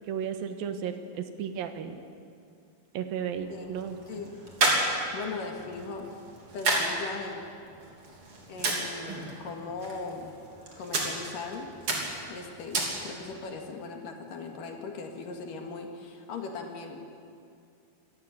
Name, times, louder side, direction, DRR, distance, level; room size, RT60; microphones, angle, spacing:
voice 1, 0.1-2.0 2.9-4.0, right 8 dB, 75° right, 7 dB, 3.1 m, -34 dB
sound 1, 3.3-13.4, right 2 dB, 40° right, 3.9 m, -33 dB
voice 2, 5.1-6.1 6.5-7.5 8.5-10.4 10.8-11.7 12.3-17.1, left 4 dB, 65° left, 3 dB, 3.6 m, -39 dB
26.5 x 14.5 x 9.9 m, 2.4 s
omnidirectional pair, 4.2 m